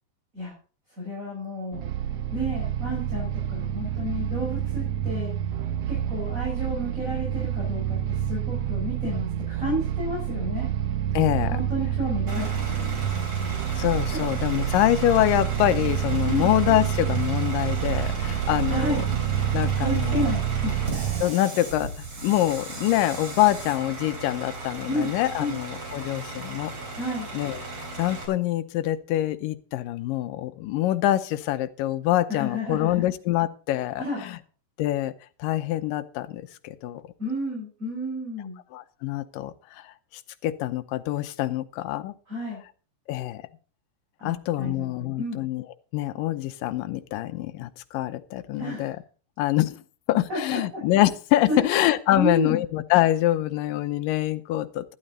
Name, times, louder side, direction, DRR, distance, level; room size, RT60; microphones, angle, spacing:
voice 1, 1.0-1.9 2.3-5.3 5.9-8.0 8.3-10.7 11.5-13.5 14.1-14.2 16.2-16.6 18.7-19.0 19.8-20.8 24.9-25.1 25.4-25.6 27.0-27.3 32.3-33.0 34.0-34.2 37.2-38.6 42.3-42.6 44.2-45.4 48.6-48.9 50.3-50.8 51.5-51.7 52.1-52.6, equal, 20° right, -4 dB, 6.0 m, -31 dB
sound 1, 1.7-21.2, right 9 dB, 85° right, 1.3 m, -28 dB
voice 2, 11.1-11.6 13.8-19.0 19.5-20.3 21.2-26.7 27.3-27.6 28.0-34.4 34.8-35.1 35.4-37.0 38.7-42.1 43.1-43.4 44.2-45.6 45.9-49.0 49.4-49.8 50.1-55.0, left 14 dB, 85° left, 12 dB, 2.5 m, -25 dB
Bus / Idling, 12.3-28.2, right 2 dB, 45° right, 4.5 m, -36 dB
12.0 x 12.0 x 4.0 m, 0.38 s
omnidirectional pair, 3.9 m